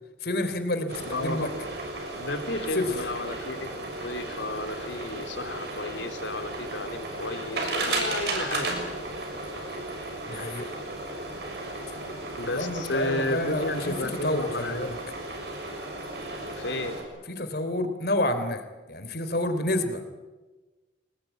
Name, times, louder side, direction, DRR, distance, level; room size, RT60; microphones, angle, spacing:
voice 1, 0.2-1.5 2.7-3.0 10.3-10.7 12.4-13.9 14.2-14.9 17.4-18.6 18.9-20.0, left 1 dB, 55° left, 9 dB, 3.3 m, -29 dB
sound 1, 0.9-17.0, right 2 dB, 60° right, 7.0 m, -35 dB
voice 2, 1.0-1.5 2.1-8.8 12.4-14.8 16.6-17.0, left 2 dB, 85° left, 6 dB, 3.5 m, -33 dB
26.0 x 20.0 x 9.3 m, 1.2 s
head